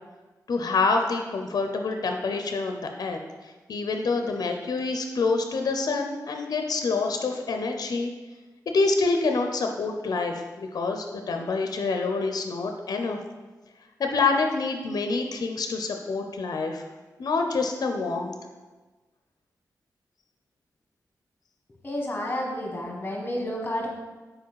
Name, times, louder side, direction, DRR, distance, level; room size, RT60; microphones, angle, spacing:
voice 1, 0.5-3.2 3.7-8.1 8.7-13.2 14.0-16.8 17.2-18.3, left 3 dB, 70° left, 4 dB, 0.5 m, -26 dB
voice 2, 21.8-23.9, left 1 dB, 25° left, 0 dB, 1.3 m, -30 dB
4.7 x 4.4 x 4.6 m, 1.3 s
wide cardioid pair, 100°, 7 cm